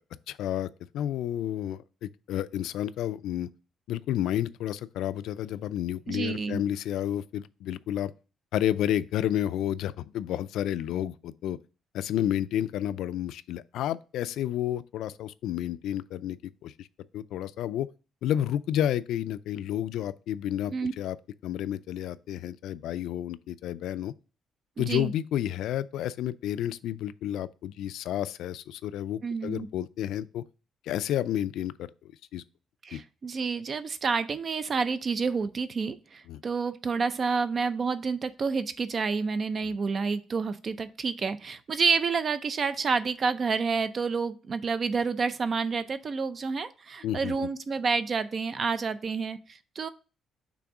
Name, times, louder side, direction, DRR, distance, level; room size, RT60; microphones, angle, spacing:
voice 1, 0.3-0.7 0.9-3.5 3.9-8.1 8.5-11.6 11.9-16.4 16.6-16.9 17.1-17.9 18.2-21.2 21.4-24.1 24.8-30.4 30.9-31.9 32.3-32.4 32.9-33.0 36.3-36.4 47.0-47.5, left 11 dB, 80° left, 0.3 m, -30 dB
voice 2, 6.1-6.6 20.7-20.9 24.8-25.1 29.2-29.7 32.8-49.9, right 5 dB, 30° right, 0.5 m, -29 dB
6.1 x 3.6 x 5.9 m
cardioid pair, 180°, 0 cm